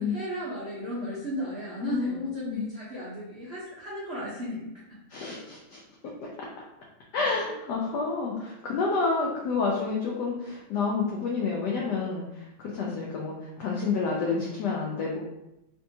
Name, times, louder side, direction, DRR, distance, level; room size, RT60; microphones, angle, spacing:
voice 1, 0.0-5.0, equal, 75° right, -8 dB, 0.5 m, -35 dB
voice 2, 1.8-2.6 5.1-5.8 7.1-15.2, left 4 dB, 80° left, -2 dB, 0.9 m, -29 dB
3.4 x 2.6 x 2.7 m, 0.92 s
omnidirectional pair, 2.3 m